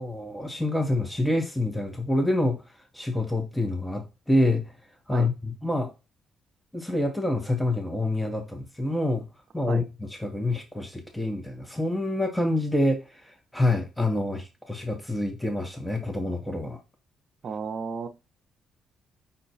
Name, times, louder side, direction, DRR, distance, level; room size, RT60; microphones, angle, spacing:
voice 1, 0.0-2.6 2.9-4.7 5.1-5.9 6.7-9.3 9.5-16.8, left 1 dB, 5° left, 0.7 m, -27 dB
voice 2, 17.4-18.1, right 5 dB, 55° right, 0.5 m, -33 dB
5.4 x 2.2 x 4.0 m
cardioid pair, 90°, 0 cm